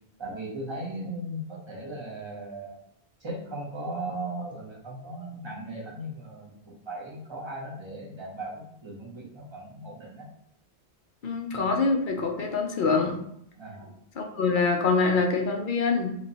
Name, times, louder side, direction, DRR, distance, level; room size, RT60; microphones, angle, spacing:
voice 1, 0.2-2.8 3.2-8.5 8.8-10.3 13.6-13.9, right 1 dB, 25° right, -3 dB, 0.9 m, -37 dB
voice 2, 11.2-13.2 14.1-16.2, left 4 dB, 55° left, 2 dB, 0.8 m, -25 dB
3.2 x 3.0 x 4.0 m, 0.73 s
omnidirectional pair, 1.1 m